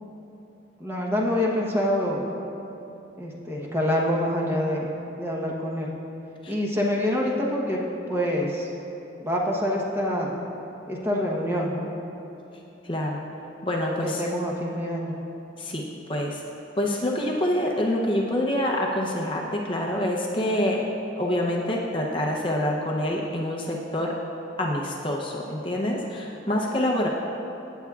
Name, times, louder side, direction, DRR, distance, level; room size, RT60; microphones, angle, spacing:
voice 1, 0.8-2.2 3.2-4.9 5.2-5.9 6.5-7.8 8.1-8.7 9.2-10.3 10.9-11.9 14.0-15.1, left 1 dB, 10° right, -3 dB, 1.0 m, -26 dB
voice 2, 12.8-13.2 13.6-14.2 15.6-15.8 16.1-16.4 16.8-20.8 21.2-24.1 24.6-27.1, left 1 dB, 25° left, -2 dB, 0.7 m, -26 dB
17.5 x 8.1 x 2.4 m, 3.0 s
head